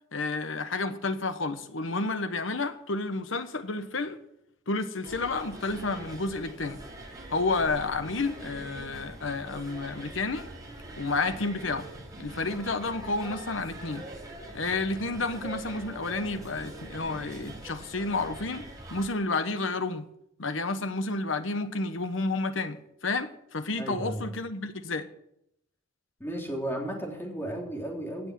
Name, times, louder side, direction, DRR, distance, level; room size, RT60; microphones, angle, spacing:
voice 1, 0.1-4.2 4.7-6.8 7.3-10.4 11.0-11.9 12.2-14.0 14.5-18.6 18.9-20.0 20.4-25.0, left 3 dB, 70° left, 1.1 m, -30 dB
sound 1, 5.0-19.1, right 1 dB, 20° right, 3.8 m, -43 dB
voice 2, 23.8-24.3 26.2-28.3, right 1 dB, 10° left, 2.9 m, -34 dB
16.5 x 6.3 x 7.5 m
head